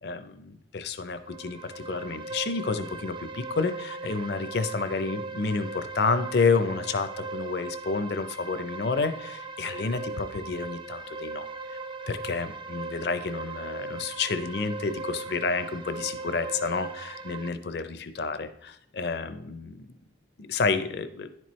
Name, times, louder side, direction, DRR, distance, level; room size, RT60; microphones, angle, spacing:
voice 1, 0.0-11.8 12.1-20.0 20.4-21.3, left 4 dB, 60° left, 11 dB, 0.5 m, -30 dB
sound 1, 1.2-17.5, right 3 dB, 25° right, 0.3 m, -38 dB
10.5 x 4.5 x 3.1 m, 0.76 s
head